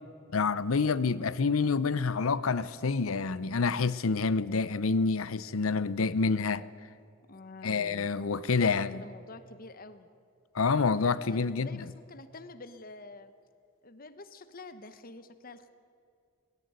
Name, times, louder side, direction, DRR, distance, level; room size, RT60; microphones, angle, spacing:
voice 1, 0.3-6.6 7.6-9.0 10.5-11.9, left 4 dB, 85° left, 0.7 m, -28 dB
voice 2, 7.3-8.1 8.6-10.1 11.0-13.3 13.8-15.7, left 3 dB, 45° left, 1.0 m, -47 dB
18.0 x 17.0 x 9.4 m
head